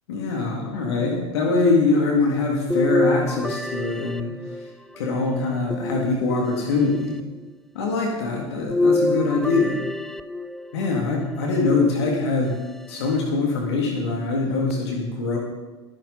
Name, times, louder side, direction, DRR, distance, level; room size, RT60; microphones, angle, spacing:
voice 1, 0.1-4.7 5.0-7.2 7.7-9.8 10.7-12.6 12.9-15.4, left 3 dB, 65° left, 0 dB, 3.0 m, -23 dB
sound 1, 2.7-5.0 5.7-6.7 8.7-10.8 11.7-12.6 13.2-13.3 14.7-14.8, left 2 dB, ahead, 0.8 m, -26 dB
23.0 x 10.5 x 4.4 m, 1.2 s
figure-of-eight pair, 80°, 15 cm